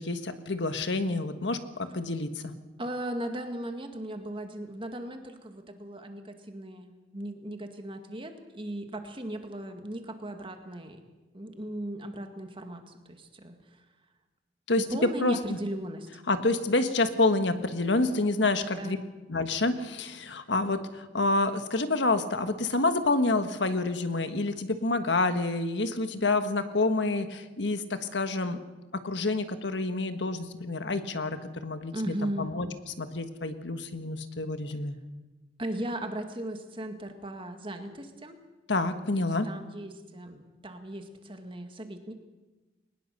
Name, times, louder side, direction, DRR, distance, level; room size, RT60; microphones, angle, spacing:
voice 1, 0.0-2.5 14.7-15.6 16.3-19.0 19.3-28.6 29.0-32.7 33.0-35.0 38.7-39.5, left 2 dB, 80° left, 9 dB, 1.5 m, -28 dB
voice 2, 2.8-11.0 11.3-13.8 14.8-16.1 18.6-19.0 31.9-32.5 35.6-38.4 39.2-42.1, right 1 dB, 30° right, 6 dB, 2.0 m, -37 dB
21.5 x 20.0 x 6.8 m, 1.2 s
head